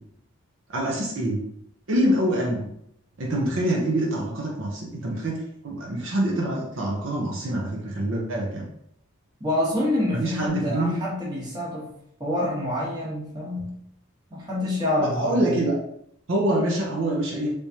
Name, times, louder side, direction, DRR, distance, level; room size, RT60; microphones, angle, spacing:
voice 1, 0.7-1.4 1.9-2.7 3.2-8.7 10.1-11.0 15.0-15.7 16.3-17.5, right 1 dB, 60° right, -2 dB, 0.7 m, -25 dB
voice 2, 9.4-11.9 12.2-13.7 14.3-15.6, left 1 dB, 20° right, -6 dB, 1.1 m, -27 dB
3.4 x 3.1 x 2.7 m, 0.74 s
head